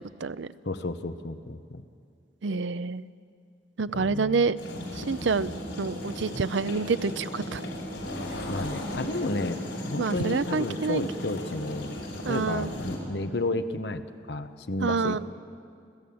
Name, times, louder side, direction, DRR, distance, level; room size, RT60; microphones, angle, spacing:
voice 1, 0.6-1.8 3.9-4.5 8.5-11.9 12.3-15.2, left 2 dB, 65° left, 10 dB, 1.0 m, -32 dB
voice 2, 2.4-3.0 3.8-4.6 5.0-5.5 5.8-7.6 10.0-11.0 12.2-12.7 14.8-15.2, right 4 dB, 80° right, 14 dB, 0.6 m, -27 dB
sound 1, 4.6-13.0, left 1 dB, 85° left, 6.0 m, -36 dB
29.5 x 14.5 x 8.7 m, 2.3 s
head